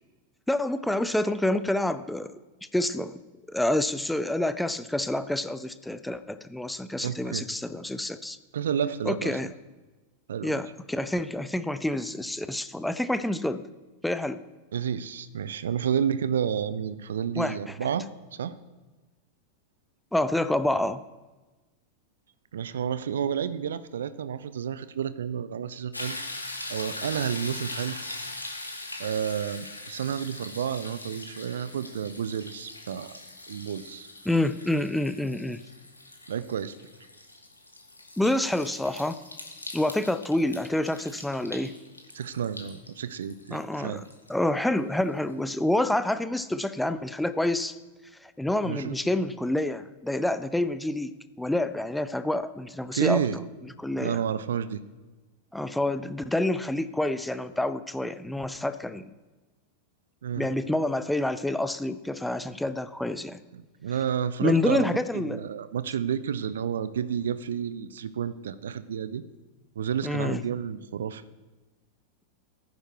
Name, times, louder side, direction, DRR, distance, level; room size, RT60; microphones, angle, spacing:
voice 1, 0.5-2.4 2.7-3.2 3.5-8.4 9.1-9.5 10.4-13.7 14.0-14.4 17.4-17.8 20.1-21.0 34.2-35.6 38.2-39.2 39.7-41.7 43.5-44.0 44.3-47.8 48.2-51.1 51.4-53.2 53.8-54.2 55.5-59.1 60.4-63.4 64.4-65.4 70.0-70.4, left 1 dB, 5° left, 13 dB, 0.5 m, -28 dB
voice 2, 7.0-7.5 8.5-9.4 10.3-10.6 14.7-18.5 22.5-26.2 26.7-28.0 29.0-33.2 33.5-34.1 36.3-36.7 42.1-44.0 48.6-48.9 52.9-53.4 54.0-54.8 60.2-60.5 63.5-69.2 69.8-71.2, right 8 dB, 65° right, 15 dB, 0.6 m, -30 dB
sound 1, 25.9-45.0 45.5-45.6, left 2 dB, 85° left, 1.8 m, -41 dB
15.5 x 9.5 x 4.6 m, 1.2 s
figure-of-eight pair, 90°, 0 cm